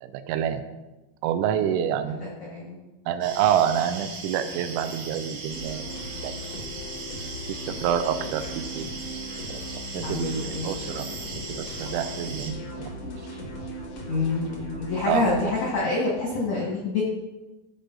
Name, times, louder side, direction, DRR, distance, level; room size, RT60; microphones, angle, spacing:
voice 1, 0.0-0.6 1.2-2.2 3.1-5.8 6.2-6.3 6.8-6.9 7.5-8.9 9.5-9.7 9.9-11.1 11.5-13.0 15.0-15.5, right 9 dB, 85° right, 9 dB, 3.0 m, -27 dB
voice 2, 2.2-2.8 10.0-10.7 14.1-14.5 14.8-17.0, left 3 dB, 70° left, -4 dB, 1.6 m, -27 dB
sound 1, 3.2-12.5, right 4 dB, 60° right, 2.2 m, -38 dB
sound 2, 5.5-15.7, left 1 dB, 90° left, 1.4 m, -38 dB
14.5 x 5.0 x 3.8 m, 1.1 s
omnidirectional pair, 5.5 m